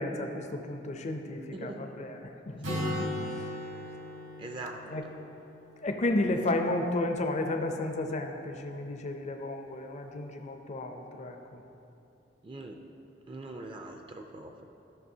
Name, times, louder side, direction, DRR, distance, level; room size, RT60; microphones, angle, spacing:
voice 1, 0.0-2.7 3.0-3.6 4.9-5.0 5.8-11.6, left 2 dB, 40° left, 5 dB, 0.5 m, -33 dB
voice 2, 1.5-1.8 4.4-5.1 12.4-12.8 13.3-14.7, right 2 dB, 30° right, 3 dB, 0.4 m, -42 dB
Acoustic guitar, 2.6-6.4, left 1 dB, 70° right, 1.3 m, -37 dB
12.0 x 6.0 x 2.7 m, 2.9 s
head